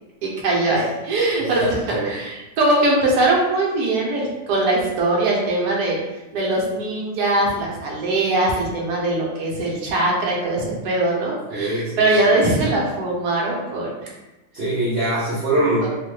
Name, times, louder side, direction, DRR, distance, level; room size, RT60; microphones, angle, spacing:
voice 1, 0.2-1.7 2.0-6.0 6.3-13.9 15.8-15.9, right 2 dB, 75° right, -3 dB, 1.3 m, -21 dB
voice 2, 1.4-2.1 11.5-12.3 14.5-15.9, right 1 dB, 55° right, -8 dB, 0.7 m, -23 dB
3.5 x 2.1 x 3.1 m, 1.0 s
omnidirectional pair, 1.8 m